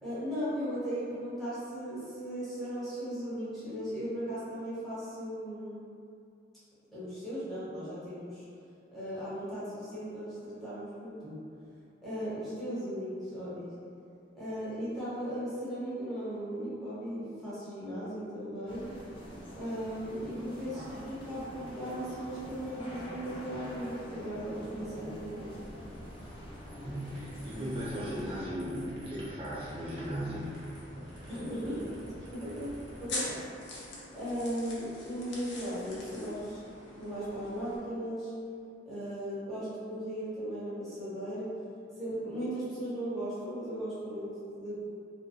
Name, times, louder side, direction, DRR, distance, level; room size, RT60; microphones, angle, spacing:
voice 1, 0.0-5.9 6.9-8.4 8.9-11.4 12.0-13.7 14.3-18.8 19.5-25.5 31.3-32.7 33.0-33.3 34.1-36.6 37.0-38.3 38.8-41.5 42.0-44.9, equal, ahead, -13 dB, 0.9 m, -37 dB
sound 1, 18.7-28.4, left 1 dB, 30° left, 0.4 m, -46 dB
voice 2, 20.7-21.0 26.8-30.6, equal, 30° right, -8 dB, 0.6 m, -37 dB
sound 2, 24.5-33.1, equal, 80° right, 0.7 m, -49 dB
sound 3, 29.5-37.8, left 2 dB, 75° left, 0.6 m, -45 dB
2.6 x 2.2 x 2.2 m, 2.4 s
head